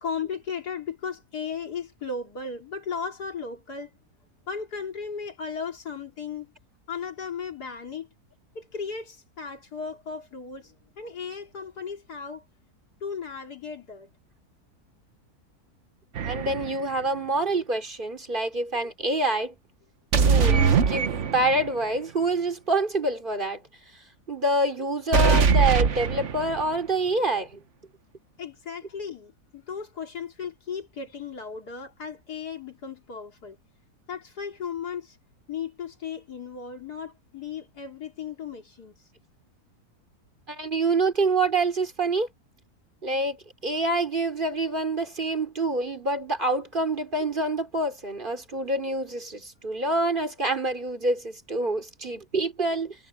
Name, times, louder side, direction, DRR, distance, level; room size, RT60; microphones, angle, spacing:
voice 1, 0.0-3.9 4.5-6.5 6.9-8.1 8.5-12.4 13.0-14.1 28.4-33.6 34.1-35.2 35.5-38.9, left 6 dB, 85° left, 3.5 m, -36 dB
voice 2, 16.2-19.5 20.2-23.6 24.3-27.6 40.5-42.3 43.0-43.4 43.6-53.0, right 2 dB, 30° right, 3.4 m, -26 dB
sound 1, 16.2-16.8 20.1-21.7 25.1-26.7, right 6 dB, 50° right, 1.4 m, -22 dB
omnidirectional pair, 1.6 m